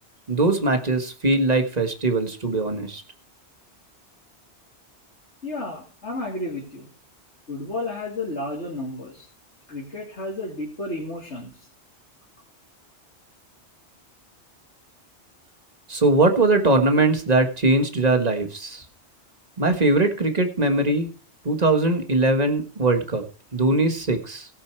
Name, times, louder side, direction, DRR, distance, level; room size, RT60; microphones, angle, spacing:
voice 1, 0.3-3.0 15.9-18.8 19.6-21.1 21.4-23.2 23.5-24.5, right 2 dB, 40° right, 7 dB, 1.6 m, -21 dB
voice 2, 5.4-6.9 7.5-9.3 9.7-11.7, left 2 dB, 85° left, -3 dB, 2.9 m, -32 dB
17.0 x 6.8 x 4.6 m, 0.37 s
omnidirectional pair, 1.1 m